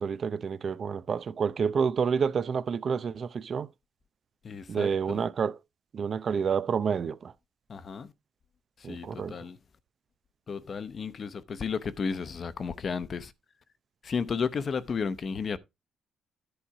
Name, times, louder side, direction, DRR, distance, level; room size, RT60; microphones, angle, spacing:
voice 1, 0.0-3.7 4.7-5.6 5.9-7.3 8.8-9.5, right 6 dB, 50° right, 0.6 m, -29 dB
voice 2, 4.4-5.3 7.7-8.1 8.8-9.6 10.5-13.3 14.0-15.6, left 5 dB, 45° left, 0.8 m, -33 dB
10.5 x 4.0 x 4.8 m
cardioid pair, 90°, 0 cm